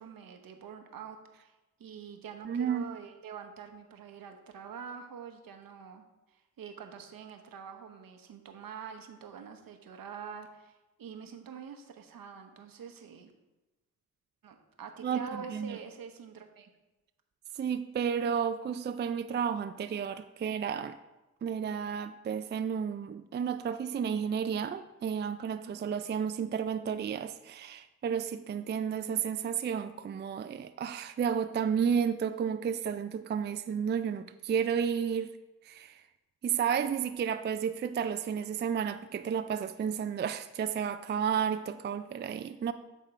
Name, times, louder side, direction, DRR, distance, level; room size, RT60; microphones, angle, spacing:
voice 1, 0.0-1.5 1.8-13.3 14.4-16.7, right 6 dB, 70° right, 6 dB, 1.0 m, -46 dB
voice 2, 2.4-2.8 15.0-15.8 17.6-21.0 21.4-35.3 35.6-36.0 36.4-42.7, right 7 dB, 30° right, 9 dB, 0.4 m, -32 dB
9.0 x 3.7 x 4.4 m, 1.0 s
supercardioid pair, 55°, 36 cm